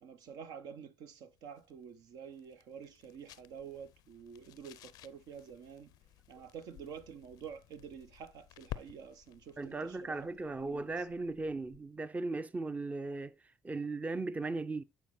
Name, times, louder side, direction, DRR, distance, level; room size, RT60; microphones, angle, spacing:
voice 1, 0.0-5.9 6.3-10.3 10.6-11.1, right 7 dB, 70° right, 0.7 m, -49 dB
sound 1, 1.3-12.0, left 14 dB, 75° left, 0.4 m, -53 dB
voice 2, 9.6-13.3 13.6-14.8, right 3 dB, 20° right, 0.5 m, -37 dB
9.1 x 4.4 x 3.1 m
hypercardioid pair, 55°, 7 cm